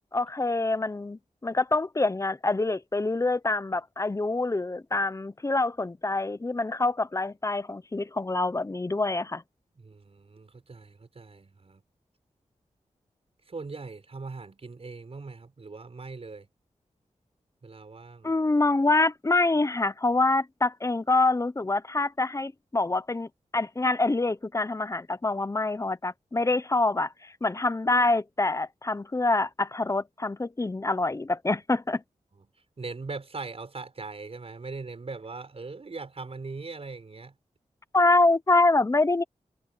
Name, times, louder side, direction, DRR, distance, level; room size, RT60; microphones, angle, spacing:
voice 1, 0.1-9.4 18.2-23.3 23.5-32.0 37.9-39.2, left 2 dB, 25° left, 0.8 m, -26 dB
voice 2, 9.8-11.8 13.5-16.5 17.6-18.3 32.4-32.5 32.8-37.3, right 4 dB, 50° right, 5.9 m, -40 dB
wide cardioid pair, 95°, 13 cm